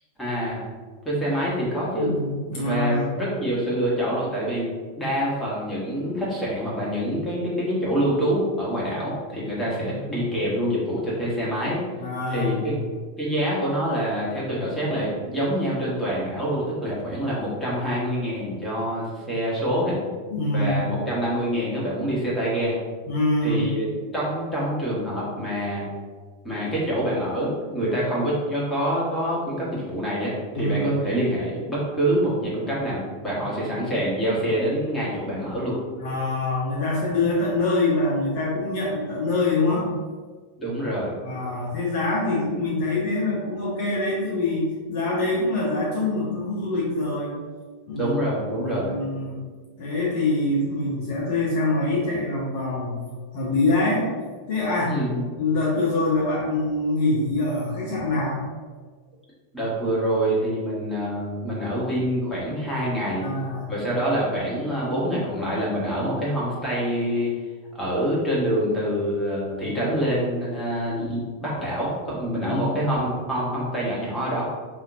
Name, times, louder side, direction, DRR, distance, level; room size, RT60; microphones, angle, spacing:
voice 1, 0.2-0.6 1.0-2.1 2.5-4.7 5.0-11.8 12.3-12.7 13.2-20.0 20.5-22.8 23.4-23.8 24.1-25.9 26.4-35.8 40.6-41.1 47.9-48.9 54.9-55.3 59.5-63.2 63.7-67.3 67.7-74.4, equal, 10° left, -7 dB, 1.5 m, -26 dB
voice 2, 2.0-3.1 9.9-10.2 12.0-12.8 20.3-20.9 23.1-23.7 30.5-30.9 36.0-39.9 41.2-47.3 47.9-49.4 49.8-53.0 53.3-54.1 54.5-55.0 55.4-58.4 63.2-63.7 72.4-72.9, left 2 dB, 50° left, -5 dB, 1.0 m, -25 dB
5.5 x 2.8 x 2.6 m, 1.5 s
figure-of-eight pair, 90°, 0 cm